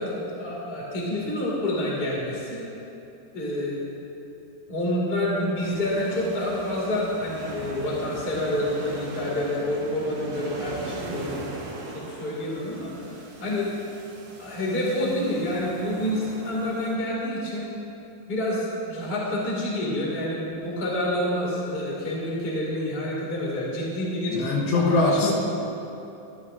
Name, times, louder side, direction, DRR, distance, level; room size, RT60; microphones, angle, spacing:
voice 1, 0.0-2.6 3.3-3.9 4.7-11.4 11.9-13.7 14.4-17.7 18.3-24.4 24.7-25.3, left 1 dB, 20° left, -5 dB, 1.9 m, -28 dB
sound 1, 5.6-17.0, right 3 dB, 80° right, 3.3 m, -39 dB
voice 2, 24.3-25.3, left 3 dB, 85° left, -2 dB, 3.4 m, -22 dB
17.5 x 11.0 x 2.7 m, 2.8 s
omnidirectional pair, 4.7 m